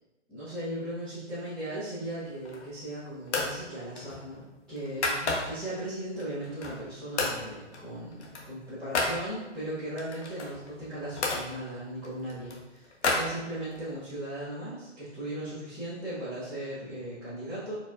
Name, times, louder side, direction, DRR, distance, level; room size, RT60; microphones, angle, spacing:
voice 1, 0.3-17.7, right 1 dB, 5° left, -17 dB, 0.7 m, -37 dB
sound 1, 2.3-2.8 3.3-3.6 4.0-5.7 6.2-6.9 7.2-7.4 7.7-9.2 10.0-11.4 12.0-13.9, left 3 dB, 65° left, 1.0 m, -32 dB
4.4 x 3.8 x 2.4 m, 1.1 s
hypercardioid pair, 155°, 37 cm